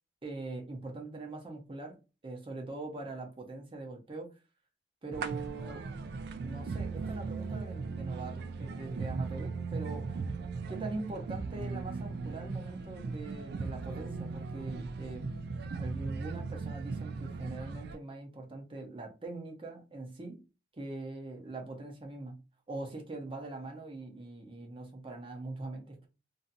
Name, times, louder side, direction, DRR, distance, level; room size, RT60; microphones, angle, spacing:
voice 1, 0.2-2.0 2.2-4.3 5.0-5.9 6.4-10.2 10.7-15.3 15.7-20.4 20.7-22.4 22.7-26.1, right 2 dB, 30° right, 0.7 m, -42 dB
sound 1, 5.1-18.0, right 4 dB, 60° right, 0.3 m, -38 dB
2.7 x 2.5 x 2.5 m
head